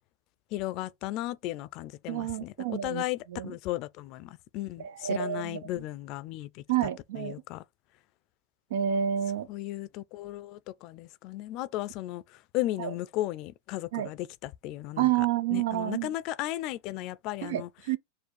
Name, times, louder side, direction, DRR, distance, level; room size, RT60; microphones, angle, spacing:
voice 1, 0.5-3.2 3.4-6.6 7.2-7.6 9.5-15.1 15.5-17.7, left 15 dB, 50° left, 0.4 m, -35 dB
voice 2, 2.1-3.0 3.3-3.5 4.8-5.6 6.7-7.4 8.7-9.5 12.8-12.9 13.9-14.1 15.0-16.1 17.4-18.0, right 11 dB, 75° right, 0.7 m, -29 dB
4.7 x 2.4 x 4.6 m
supercardioid pair, 120°, 0 cm